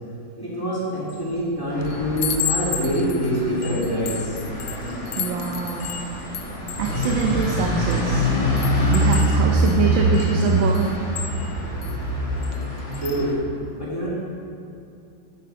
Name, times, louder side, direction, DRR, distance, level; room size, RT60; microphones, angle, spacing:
voice 1, 0.4-4.4 12.9-13.4 13.8-14.1, equal, 10° left, -7 dB, 2.1 m, -25 dB
Chime, 1.1-1.4 1.8-8.1 8.6-12.0 12.4-12.6 12.9-13.2, left 7 dB, 75° left, 0.9 m, -33 dB
sound 1, 1.7-13.3, equal, 35° left, 1.8 m, -24 dB
voice 2, 5.2-5.9 6.8-8.3 8.8-11.0 12.5-12.6, right 7 dB, 90° right, 2 dB, 1.5 m, -25 dB
8.7 x 6.6 x 5.4 m, 2.6 s
omnidirectional pair, 2.1 m